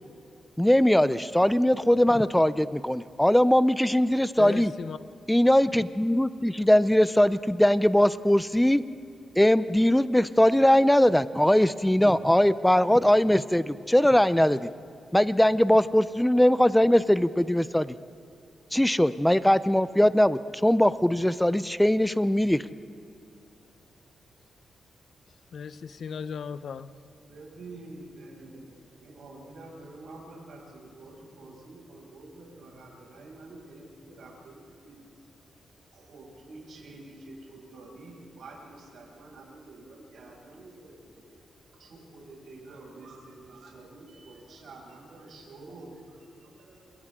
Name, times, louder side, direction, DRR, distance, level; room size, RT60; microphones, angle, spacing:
voice 1, 0.6-4.7 5.3-8.8 9.4-14.7 15.1-17.9 18.7-22.6, left 1 dB, 5° left, 14 dB, 0.6 m, -21 dB
voice 2, 4.4-5.0 25.5-26.9, left 6 dB, 65° left, 13 dB, 0.8 m, -36 dB
voice 3, 27.3-35.1 35.9-40.9 41.3-41.4 41.8-47.1, right 2 dB, 70° right, -2 dB, 6.7 m, -48 dB
29.5 x 27.0 x 3.8 m, 2.6 s
cardioid pair, 100°, 0 cm